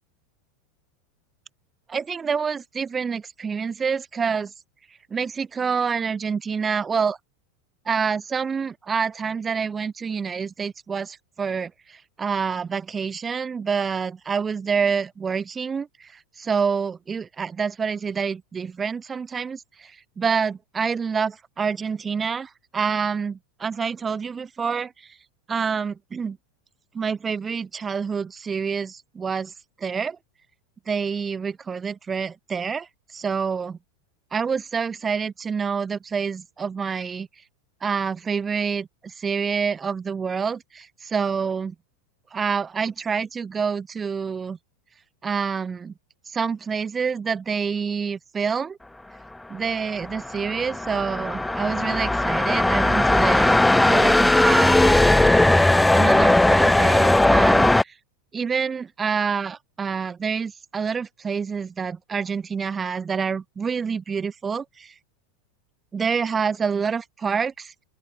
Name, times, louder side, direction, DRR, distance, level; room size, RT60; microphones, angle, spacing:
voice 1, 1.9-4.5 5.1-7.2 7.8-25.1 25.5-26.4 26.9-29.5 29.8-30.2 30.9-33.8 34.3-37.3 37.8-41.7 42.3-44.6 45.2-45.9 46.3-48.8 49.5-53.6 53.9-57.9 58.3-64.9 65.9-67.8, right 6 dB, 20° right, 3.0 m, -27 dB
sound 1, 49.9-57.8, left 2 dB, 5° left, 0.5 m, -18 dB
open air
supercardioid pair, 135°, 0 cm